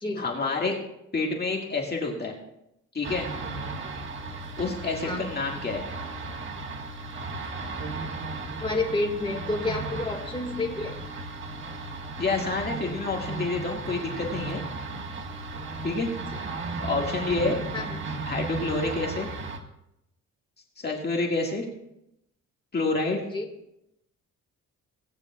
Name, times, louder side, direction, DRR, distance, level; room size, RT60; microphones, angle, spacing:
voice 1, 0.2-0.8 1.1-2.3 2.9-3.3 4.6-5.8 12.2-14.6 15.8-16.1 16.8-17.6 18.3-19.3 20.8-21.7 22.7-23.2, left 3 dB, 35° left, 0 dB, 2.0 m, -28 dB
sound 1, 3.0-19.6, right 3 dB, 40° right, 1.6 m, -35 dB
voice 2, 8.6-10.9 17.7-18.0 23.3-23.5, left 2 dB, 15° left, 1 dB, 2.1 m, -29 dB
18.0 x 9.4 x 2.4 m, 0.83 s
cardioid pair, 90°, 30 cm